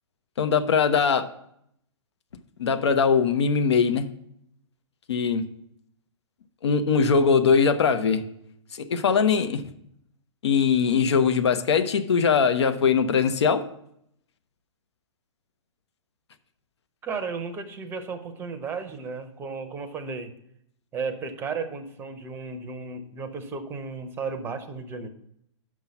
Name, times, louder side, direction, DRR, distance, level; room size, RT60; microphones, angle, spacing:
voice 1, 0.4-1.3 2.6-4.1 5.1-5.4 6.6-8.2 8.7-9.6 10.4-13.6, left 6 dB, 60° left, 9 dB, 0.7 m, -21 dB
voice 2, 17.0-20.3 20.9-25.1, right 4 dB, 15° right, 8 dB, 0.7 m, -34 dB
6.0 x 5.6 x 7.0 m, 0.74 s
figure-of-eight pair, 120°, 16 cm